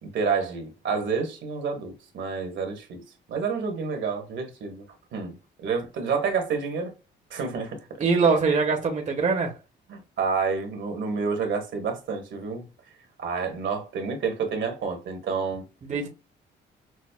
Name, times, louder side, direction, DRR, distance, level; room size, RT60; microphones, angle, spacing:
voice 1, 0.0-3.0 3.3-4.8 5.1-6.9 7.3-8.1 9.9-12.7 13.2-15.6, right 5 dB, 70° right, 1.3 m, -29 dB
voice 2, 8.0-9.5 15.8-16.1, right 4 dB, 40° right, 0.8 m, -23 dB
6.1 x 2.0 x 2.2 m
cardioid pair, 90°, 20 cm